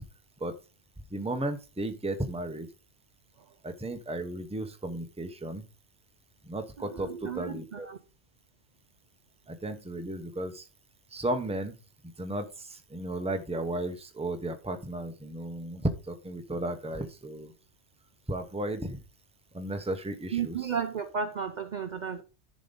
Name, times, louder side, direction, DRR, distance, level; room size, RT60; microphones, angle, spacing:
voice 1, 1.1-2.7 3.6-5.6 6.4-7.9 9.5-10.7 11.1-11.8 12.0-17.5 18.3-19.0 19.5-20.6, right 1 dB, 5° right, 0.7 m, -34 dB
voice 2, 6.8-8.0 20.3-22.2, right 7 dB, 50° right, 0.6 m, -33 dB
10.5 x 5.2 x 3.8 m
omnidirectional pair, 1.2 m